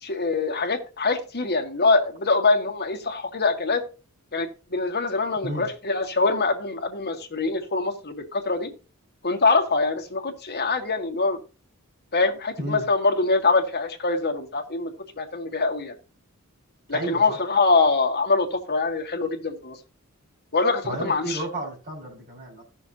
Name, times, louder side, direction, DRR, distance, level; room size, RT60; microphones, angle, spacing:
voice 1, 0.0-3.8 4.3-8.7 9.2-11.4 12.1-15.9 16.9-19.8 20.5-21.4, left 3 dB, 50° left, 3 dB, 1.7 m, -24 dB
voice 2, 16.9-17.4 20.8-22.6, right 2 dB, 45° right, -2 dB, 5.3 m, -32 dB
17.0 x 6.2 x 2.8 m, 0.35 s
head